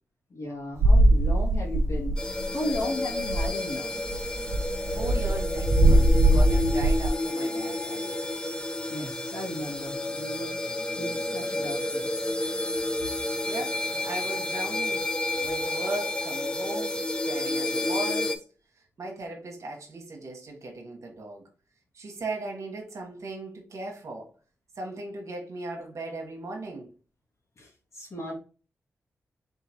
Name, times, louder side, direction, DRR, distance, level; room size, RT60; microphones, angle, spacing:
voice 1, 0.3-4.0 8.9-10.6 11.0-12.1 27.6-28.4, left 1 dB, 60° left, 2.0 m, -35 dB
sound 1, 0.8-2.4 2.7-2.8 3.1-3.6 4.1-7.1, right 1 dB, 90° right, 0.7 m, -21 dB
sound 2, 2.2-18.4, left 2 dB, 15° left, 0.6 m, -30 dB
voice 2, 4.9-8.2 13.5-15.1 15.4-18.4 19.0-21.4 21.9-24.3 24.8-26.9, right 2 dB, 70° right, 1.3 m, -37 dB
4.0 x 3.7 x 2.9 m
cardioid pair, 50°, 5 cm